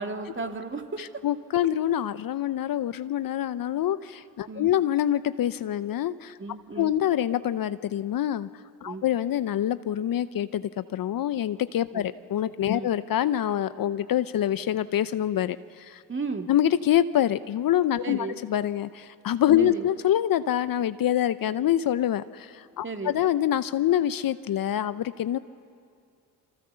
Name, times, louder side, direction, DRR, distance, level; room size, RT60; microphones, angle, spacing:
voice 1, 0.0-1.1 4.5-4.7 6.4-6.9 8.8-9.0 11.9-12.1 12.7-12.9 16.1-16.5 18.0-18.4 19.6-19.9 22.8-23.2, right 3 dB, 25° right, 4 dB, 2.5 m, -34 dB
voice 2, 1.0-6.4 6.8-8.5 8.8-16.0 16.5-25.4, left 11 dB, 50° left, 14 dB, 0.8 m, -26 dB
30.0 x 24.0 x 6.9 m, 2.3 s
supercardioid pair, 60°, 43 cm